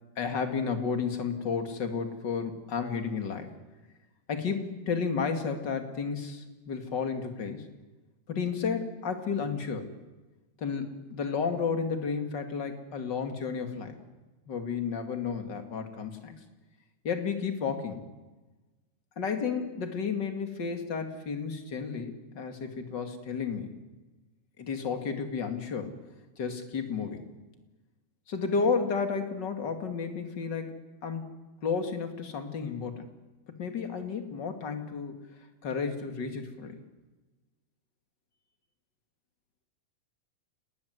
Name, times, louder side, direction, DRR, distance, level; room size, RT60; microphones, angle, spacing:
voice 1, 0.2-3.5 4.3-7.7 8.3-9.9 10.6-14.0 14.5-16.3 17.0-18.0 19.2-23.8 24.6-25.9 26.4-27.3 28.3-30.8 31.0-31.3 31.6-33.1 33.6-35.2 35.6-36.8, left 5 dB, 35° left, 6 dB, 2.5 m, -32 dB
29.0 x 19.5 x 9.6 m, 1.2 s
omnidirectional pair, 3.9 m